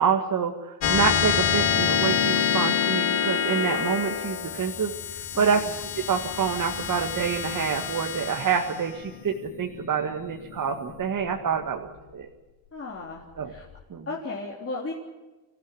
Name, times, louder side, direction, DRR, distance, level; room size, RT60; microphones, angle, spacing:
voice 1, 0.0-5.7 6.1-12.3 13.4-13.5 13.9-14.1, right 6 dB, 40° right, 2 dB, 2.0 m, -27 dB
sound 1, 0.8-11.7, left 8 dB, 80° left, 2.9 m, -27 dB
voice 2, 5.3-5.7 12.7-13.7 14.1-14.9, left 3 dB, 30° left, -3 dB, 3.6 m, -35 dB
25.5 x 15.5 x 10.0 m, 1.2 s
cardioid pair, 115°, 48 cm